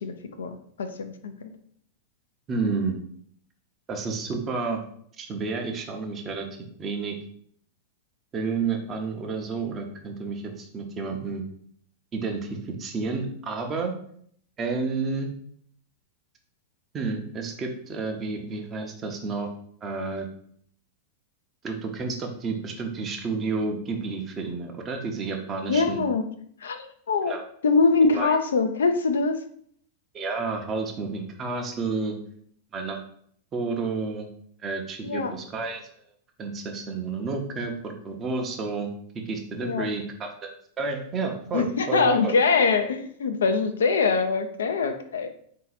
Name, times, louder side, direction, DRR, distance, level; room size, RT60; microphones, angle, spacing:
voice 1, 0.0-1.5 25.7-26.2 26.6-27.3 27.6-29.4 35.0-35.3 39.6-39.9 41.5-45.4, left 4 dB, 75° left, 7 dB, 0.5 m, -23 dB
voice 2, 2.5-3.0 3.9-4.8 5.2-6.5 6.8-7.2 8.3-11.4 12.1-13.9 14.6-15.3 16.9-19.5 19.8-20.3 21.6-26.0 27.2-27.4 28.1-28.4 30.1-32.2 32.7-33.0 33.5-34.3 34.6-35.8 36.4-38.9 39.3-40.3 40.8-42.3, right 4 dB, 30° right, 2 dB, 0.8 m, -30 dB
3.9 x 2.8 x 4.0 m, 0.62 s
hypercardioid pair, 95°, 0 cm